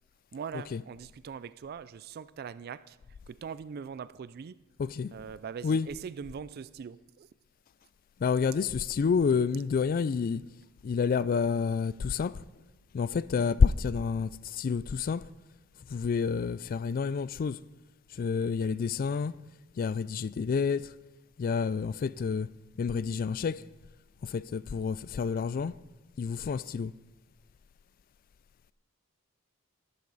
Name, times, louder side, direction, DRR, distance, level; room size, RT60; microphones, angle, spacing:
voice 1, 0.3-3.0 3.3-4.6 5.1-7.3, right 6 dB, 50° right, 0.3 m, -41 dB
voice 2, 4.8-5.1 5.6-5.9 8.2-10.4 10.8-12.4 12.9-15.3 15.9-17.6 18.1-19.4 19.8-20.9 21.4-22.5 22.8-23.6 24.2-25.8 26.2-26.9, left 5 dB, 45° left, 0.3 m, -29 dB
13.0 x 11.0 x 4.0 m
head